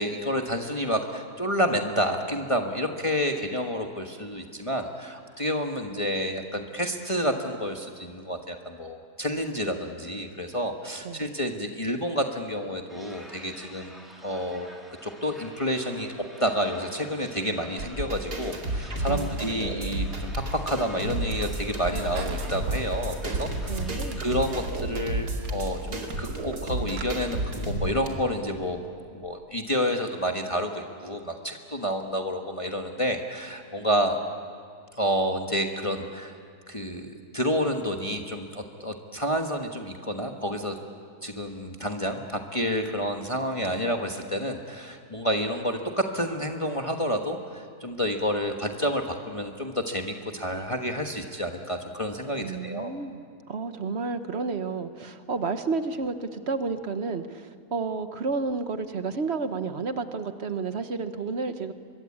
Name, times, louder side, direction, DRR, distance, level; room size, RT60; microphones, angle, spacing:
voice 1, 0.0-13.9 14.2-14.7 15.0-16.1 16.4-23.8 24.2-28.8 29.1-34.2 34.9-36.3 36.7-37.1 37.3-40.7 41.2-53.0, equal, 20° left, 3 dB, 1.3 m, -29 dB
sound 1, 12.9-24.5, equal, ahead, 3.6 m, -49 dB
sound 2, 17.8-28.1, right 1 dB, 85° right, 3.2 m, -32 dB
voice 2, 19.1-19.6 23.7-24.3 52.4-61.7, right 4 dB, 45° right, 9 dB, 1.2 m, -31 dB
sound 3, 20.5-27.1, right 3 dB, 65° right, 1.8 m, -39 dB
24.5 x 22.5 x 8.6 m, 2.2 s
omnidirectional pair, 1.6 m